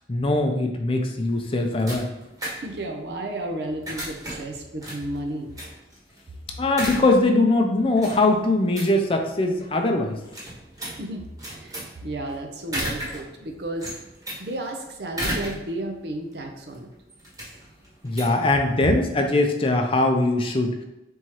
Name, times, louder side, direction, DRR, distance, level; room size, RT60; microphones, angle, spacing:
voice 1, 0.1-2.1 6.6-10.2 18.0-20.7, left 2 dB, 30° left, 4 dB, 0.5 m, -21 dB
sound 1, 1.2-19.1, equal, 20° right, 1.2 m, -36 dB
voice 2, 2.6-5.5 11.0-11.2 11.6-11.8 12.0-13.9 14.4-16.9 18.8-19.1, right 1 dB, 65° right, 3 dB, 0.7 m, -32 dB
4.3 x 3.6 x 3.1 m, 0.96 s
head